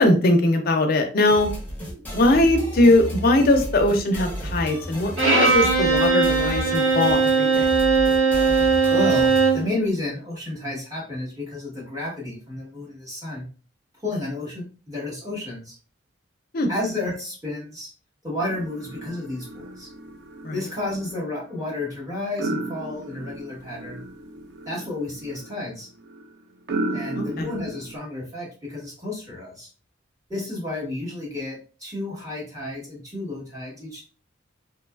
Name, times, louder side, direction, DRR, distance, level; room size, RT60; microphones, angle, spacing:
voice 1, 0.0-1.5 2.1-7.7 16.5-16.7 20.4-20.6 26.9-27.5, left 1 dB, 50° left, 4 dB, 0.5 m, -20 dB
sound 1, 1.3-9.6, equal, 10° left, 0.7 m, -33 dB
Bowed string instrument, 5.2-9.7, right 4 dB, 85° right, 1.2 m, -19 dB
voice 2, 8.9-13.5 14.0-15.7 16.7-17.9 18.2-19.9 20.5-24.0 24.7-25.9 26.9-29.7 30.3-34.0, left 2 dB, 15° right, -5 dB, 1.1 m, -31 dB
sound 2, 18.4-28.0, right 2 dB, 55° right, 0.4 m, -35 dB
2.7 x 2.3 x 2.3 m, 0.37 s
head